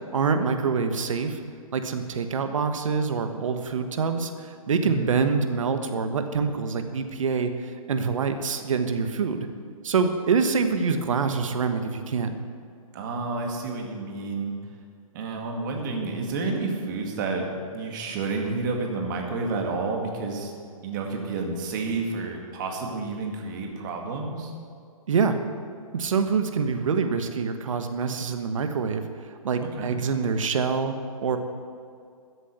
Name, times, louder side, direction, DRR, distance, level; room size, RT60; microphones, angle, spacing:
voice 1, 0.1-1.4 1.7-7.5 7.9-9.5 9.8-12.4 25.1-25.4 25.9-29.0 29.4-30.9 31.2-31.4, right 5 dB, 65° right, 7 dB, 1.4 m, -25 dB
voice 2, 4.8-5.1 12.9-14.5 15.1-20.5 20.8-24.5 29.6-29.9, right 3 dB, 35° right, 1 dB, 2.1 m, -30 dB
14.0 x 8.1 x 8.0 m, 2.3 s
hypercardioid pair, 160°, 18 cm